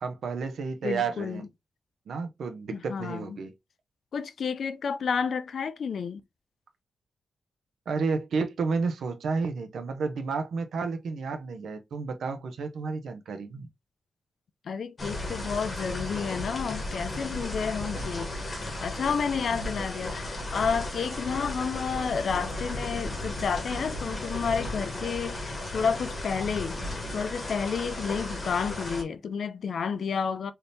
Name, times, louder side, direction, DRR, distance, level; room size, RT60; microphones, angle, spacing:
voice 1, 0.0-1.5 2.1-3.5 7.9-13.7, right 4 dB, 80° right, 0.6 m, -31 dB
voice 2, 0.8-1.4 2.7-3.4 4.1-6.2 14.7-26.8 27.1-30.5, left 6 dB, 60° left, 0.3 m, -31 dB
sound 1, 15.0-29.0, left 1 dB, 25° left, 0.9 m, -35 dB
3.4 x 2.7 x 2.6 m
wide cardioid pair, 165°, 0 cm